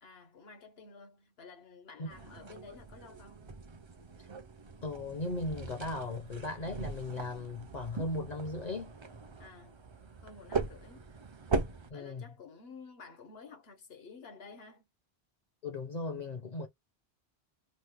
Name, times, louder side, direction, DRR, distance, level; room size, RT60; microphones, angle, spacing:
voice 1, 0.0-3.5 9.4-9.8 10.2-11.0 11.9-14.9, left 4 dB, 75° left, 1.2 m, -52 dB
sound 1, 2.1-11.9, right 4 dB, 40° right, 0.5 m, -40 dB
voice 2, 4.8-8.9 11.9-12.4 15.6-16.7, left 2 dB, 50° left, 0.7 m, -37 dB
3.0 x 2.1 x 3.3 m
omnidirectional pair, 1.0 m